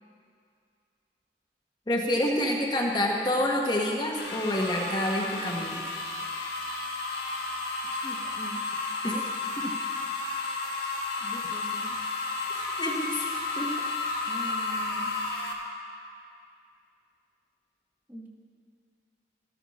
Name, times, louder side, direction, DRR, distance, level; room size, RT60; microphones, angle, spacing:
voice 1, 1.9-5.8 9.0-9.1 9.6-9.7 12.5-13.3 13.6-13.7, left 1 dB, 25° left, -1 dB, 1.0 m, -28 dB
sound 1, 4.2-15.5, left 3 dB, 60° left, 1.6 m, -32 dB
voice 2, 8.0-8.6 9.0-9.4 11.2-12.0 14.3-15.1 18.1-18.3, right 1 dB, 10° right, -2 dB, 1.2 m, -42 dB
13.5 x 13.0 x 4.1 m, 2.3 s
head